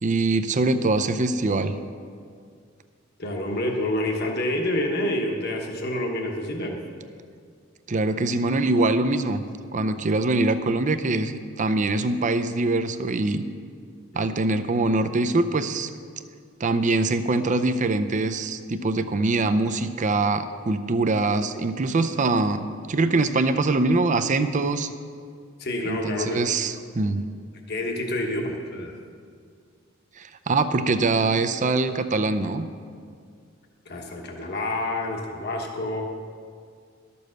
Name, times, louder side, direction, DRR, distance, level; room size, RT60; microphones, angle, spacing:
voice 1, 0.0-1.7 7.9-9.4 9.7-13.4 14.1-15.9 16.6-24.9 25.8-27.2 30.2-32.7, right 3 dB, 35° right, 10 dB, 0.5 m, -23 dB
voice 2, 3.2-6.8 14.1-14.3 25.6-26.5 27.7-28.9 33.8-36.0, left 1 dB, 50° left, 1 dB, 1.2 m, -28 dB
12.0 x 7.0 x 6.5 m, 2.1 s
head